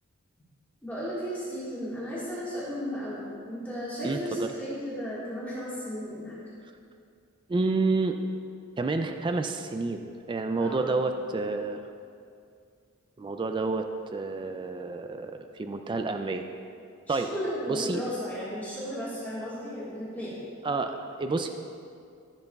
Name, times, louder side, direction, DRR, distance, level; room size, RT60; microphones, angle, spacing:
voice 1, 0.8-6.4 10.6-10.9 17.1-20.4, equal, 10° left, -10 dB, 1.7 m, -35 dB
voice 2, 4.0-4.5 7.5-8.2 8.8-11.8 13.2-16.4 17.1-17.3 17.7-18.0 20.6-21.5, right 3 dB, 20° right, 6 dB, 0.3 m, -29 dB
14.5 x 7.8 x 2.3 m, 2.4 s
head